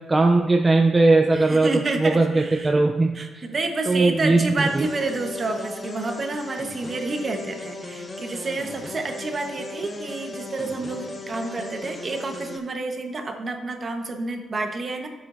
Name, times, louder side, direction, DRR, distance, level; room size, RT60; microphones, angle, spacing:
voice 1, 0.1-3.1 3.9-4.9, right 3 dB, 25° right, 3 dB, 0.6 m, -19 dB
voice 2, 1.3-2.7 3.1-15.1, right 3 dB, 40° right, 4 dB, 1.3 m, -29 dB
sound 1, 4.6-12.6, left 2 dB, 30° left, 1.3 m, -36 dB
12.5 x 7.9 x 2.7 m, 1.3 s
cardioid pair, 110°, 0 cm